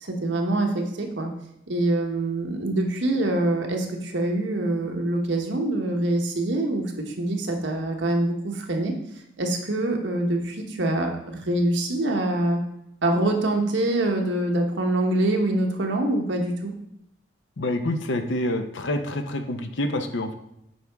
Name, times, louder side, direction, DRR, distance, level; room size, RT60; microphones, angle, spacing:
voice 1, 0.0-1.3 1.7-8.9 9.4-12.6 13.0-16.7, right 1 dB, 75° right, 2 dB, 1.1 m, -25 dB
voice 2, 17.6-20.3, left 1 dB, 80° left, 7 dB, 0.8 m, -27 dB
8.4 x 4.7 x 3.5 m, 0.79 s
head